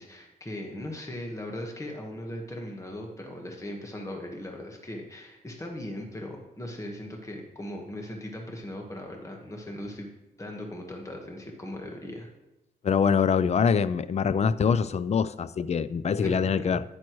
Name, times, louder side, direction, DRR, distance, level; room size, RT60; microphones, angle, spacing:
voice 1, 0.0-10.1 10.4-12.3 16.2-16.8, left 1 dB, 20° left, 1 dB, 1.4 m, -38 dB
voice 2, 12.8-16.8, left 6 dB, 45° left, 15 dB, 0.4 m, -24 dB
10.5 x 9.8 x 3.1 m, 0.96 s
wide cardioid pair, 120°, 16 cm